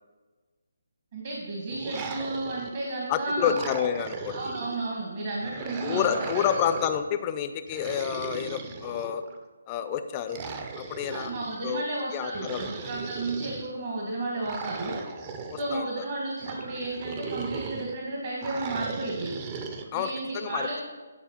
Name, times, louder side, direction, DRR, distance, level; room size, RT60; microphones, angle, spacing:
voice 1, 1.1-3.5 4.3-6.4 11.1-15.1 15.6-19.3 19.9-20.8, right 2 dB, 50° right, -2 dB, 1.4 m, -33 dB
sound 1, 1.7-2.9 3.4-4.8 5.4-7.0 7.7-9.4 10.3-11.6 12.3-13.7 14.4-15.8 16.4-17.9 18.4-19.9, right 5 dB, 30° right, 0.6 m, -37 dB
voice 2, 3.1-4.5 5.8-9.2 9.7-10.4 10.8-11.3 11.6-11.8 12.1-12.7 15.5-16.1 19.9-20.7, left 9 dB, 25° left, 9 dB, 0.4 m, -29 dB
9.4 x 4.2 x 4.3 m, 1.3 s
figure-of-eight pair, 150°, 0 cm